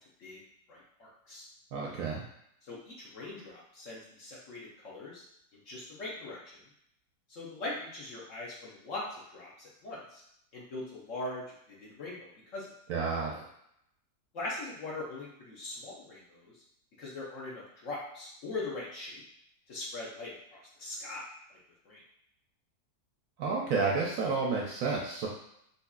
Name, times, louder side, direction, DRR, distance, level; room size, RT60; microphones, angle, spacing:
voice 1, 0.7-1.5 2.6-5.2 5.5-6.4 7.3-9.1 9.3-10.2 10.5-11.5 11.8-12.7 14.3-16.5 17.0-19.2 19.7-21.2 21.5-21.6 21.9-22.0, left 2 dB, 55° left, -5 dB, 1.0 m, -41 dB
voice 2, 1.7-2.2 12.9-13.4 23.4-25.3, right 4 dB, 70° right, -2 dB, 0.8 m, -30 dB
3.8 x 2.8 x 2.3 m, 0.73 s
omnidirectional pair, 1.8 m